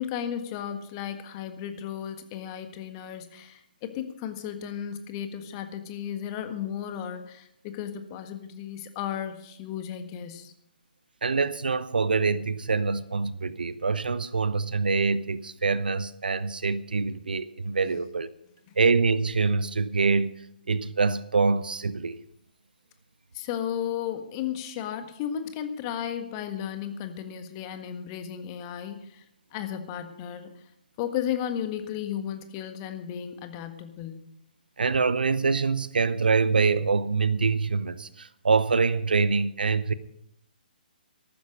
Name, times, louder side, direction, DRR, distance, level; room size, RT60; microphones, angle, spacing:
voice 1, 0.0-10.5 17.9-18.0 23.3-29.2 29.5-30.5 31.0-34.2, left 9 dB, 30° left, 1.6 m, -34 dB
voice 2, 11.2-18.3 18.8-20.4 20.7-22.1 34.8-39.9, right 4 dB, 70° right, 0.8 m, -25 dB
14.5 x 12.5 x 5.2 m
figure-of-eight pair, 135°, 5 cm